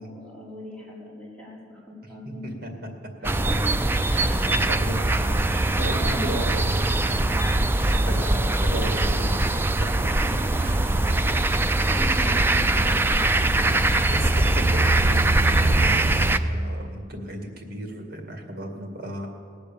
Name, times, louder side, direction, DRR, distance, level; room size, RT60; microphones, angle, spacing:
voice 1, 0.0-2.5 3.2-4.7 5.8-6.5 7.6-9.1 10.2-10.3 10.6-10.7 11.3-13.3, equal, 5° left, -8 dB, 4.7 m, -39 dB
voice 2, 2.4-2.9 3.2-3.3 4.1-7.5 7.8-8.4 8.6-11.2 13.5-19.3, right 1 dB, 55° right, 3 dB, 2.1 m, -36 dB
sound 1, 3.2-16.4, right 2 dB, 10° right, 0.4 m, -22 dB
19.0 x 8.4 x 7.1 m, 2.1 s
head